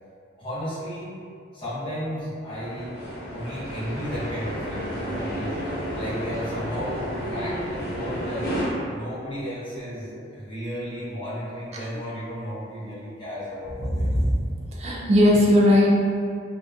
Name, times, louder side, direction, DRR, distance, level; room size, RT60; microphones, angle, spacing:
voice 1, 0.4-1.1 1.5-3.0 3.3-5.6 5.9-8.5 8.9-14.3, equal, 25° left, -11 dB, 0.8 m, -33 dB
sound 1, 2.5-8.6, equal, 60° left, 0.6 m, -32 dB
voice 2, 13.8-14.3 14.7-15.9, left 1 dB, 35° right, -4 dB, 0.3 m, -19 dB
2.6 x 2.1 x 2.2 m, 2.3 s
head